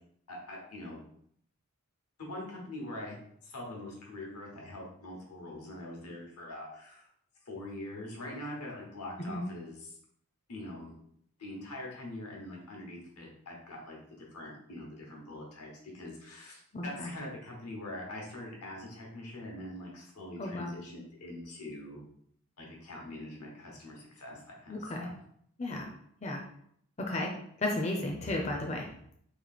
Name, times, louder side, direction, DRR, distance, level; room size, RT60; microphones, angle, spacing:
voice 1, 0.3-1.0 2.2-3.2 3.4-7.1 7.4-10.0 10.5-10.9 11.4-15.7 15.9-22.0 22.6-25.1, left 1 dB, 90° left, -1 dB, 1.2 m, -43 dB
voice 2, 16.7-17.1 20.4-20.7 24.7-25.1 25.6-25.9 26.2-26.4 27.0-27.3 27.6-28.9, left 1 dB, 30° left, 1 dB, 0.5 m, -33 dB
3.2 x 2.7 x 4.1 m, 0.68 s
head